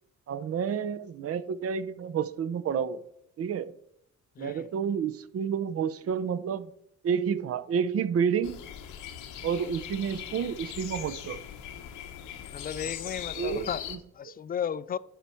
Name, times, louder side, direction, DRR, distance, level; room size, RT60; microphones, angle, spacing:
voice 1, 0.3-3.0 3.4-3.7 4.4-6.7 7.0-8.6 9.4-11.4 13.4-14.0, right 7 dB, 50° right, 0.6 m, -30 dB
voice 2, 4.4-4.7 12.5-13.8 14.1-15.0, left 8 dB, 30° left, 0.4 m, -34 dB
sound 1, 8.4-14.0, left 10 dB, 90° left, 1.0 m, -40 dB
11.5 x 4.5 x 4.5 m
cardioid pair, 90°, 30 cm